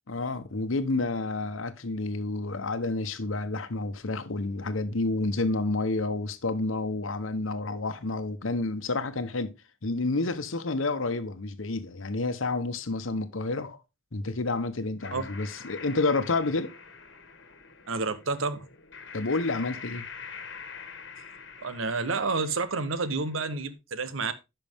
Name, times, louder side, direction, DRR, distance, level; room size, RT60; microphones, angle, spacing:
voice 1, 0.1-9.5 9.8-13.8 14.1-16.7 19.1-20.0, left 3 dB, 85° left, 1.0 m, -29 dB
sound 1, 15.0-23.7, left 5 dB, 60° left, 1.5 m, -45 dB
voice 2, 17.9-18.7 21.6-24.3, right 4 dB, 85° right, 0.9 m, -29 dB
10.5 x 5.7 x 3.5 m
head